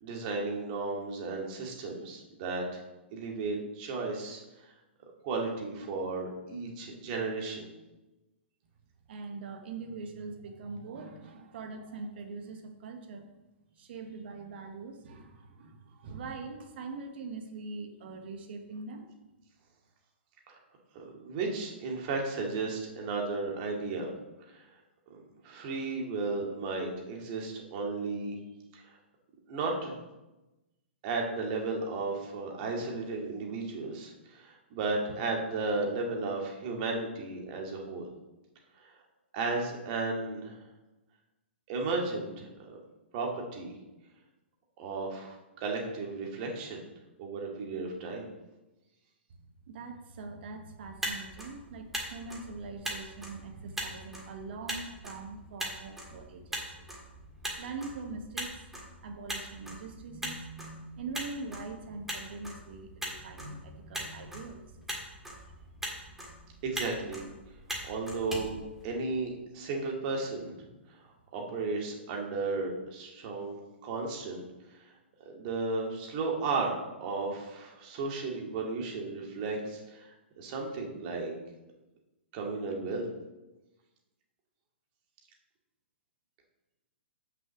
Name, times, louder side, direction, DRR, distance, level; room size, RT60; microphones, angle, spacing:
voice 1, 0.0-2.8 3.1-4.4 5.2-7.7 20.9-24.1 24.5-24.6 25.1-28.4 28.7-28.8 29.5-30.0 31.0-38.1 39.3-40.5 41.7-42.8 43.1-43.7 44.8-46.8 47.2-48.3 66.6-67.2 67.9-68.6 68.8-70.5 71.3-74.4 75.3-76.8 77.0-80.0 80.4-81.3 82.3-83.1, right 3 dB, 40° right, 0 dB, 2.1 m, -34 dB
voice 2, 9.1-13.3 13.8-19.1 49.7-56.9 57.3-58.6 59.0-65.0 65.4-65.6 66.1-66.6, right 3 dB, 60° right, 5 dB, 1.2 m, -43 dB
Motor vehicle (road), 50.8-69.4, right 1 dB, 5° right, 1.9 m, -41 dB
6.2 x 5.4 x 7.0 m, 1.0 s
hypercardioid pair, 130°, 7 cm